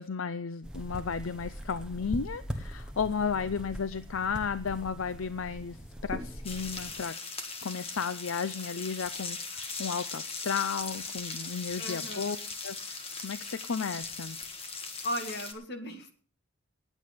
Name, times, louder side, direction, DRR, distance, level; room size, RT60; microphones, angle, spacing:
voice 1, 0.0-7.2 7.6-12.4 12.6-14.4, left 5 dB, 70° left, 14 dB, 0.5 m, -34 dB
sound 1, 0.6-7.0, equal, 5° right, 1.3 m, -41 dB
sound 2, 6.4-15.5, left 4 dB, 25° left, 1.5 m, -39 dB
voice 2, 11.8-12.4 15.0-16.1, equal, 50° left, 6 dB, 1.9 m, -36 dB
18.0 x 8.4 x 5.2 m, 0.42 s
head